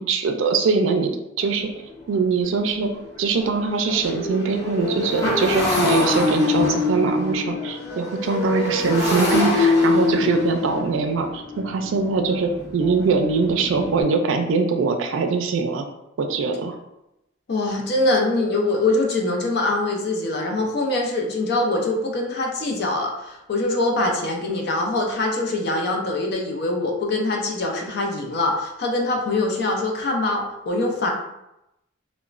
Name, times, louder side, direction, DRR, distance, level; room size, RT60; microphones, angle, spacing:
voice 1, 0.1-1.1 1.4-1.7 2.1-2.9 3.2-15.8 16.2-16.7, right 4 dB, 75° right, 5 dB, 0.4 m, -22 dB
Motorcycle, 1.4-1.5 2.0-2.1 2.4-14.0, left 3 dB, 20° left, 1.1 m, -24 dB
voice 2, 17.5-31.1, left 2 dB, 60° left, 1 dB, 0.5 m, -23 dB
3.0 x 2.1 x 2.4 m, 0.88 s
head